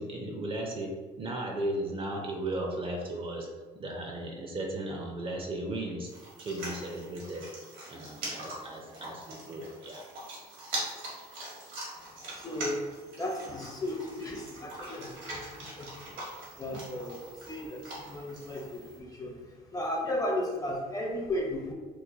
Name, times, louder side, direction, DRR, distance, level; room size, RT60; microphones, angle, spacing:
voice 1, 0.0-3.5 3.7-6.1 6.4-7.5 7.9-10.1, right 1 dB, 35° right, 1 dB, 0.5 m, -36 dB
sound 1, 6.1-19.0, right 1 dB, 85° right, 1.3 m, -42 dB
voice 2, 12.0-21.7, left 1 dB, 20° left, -1 dB, 0.6 m, -35 dB
3.1 x 2.2 x 3.4 m, 1.4 s
cardioid pair, 110°, 17 cm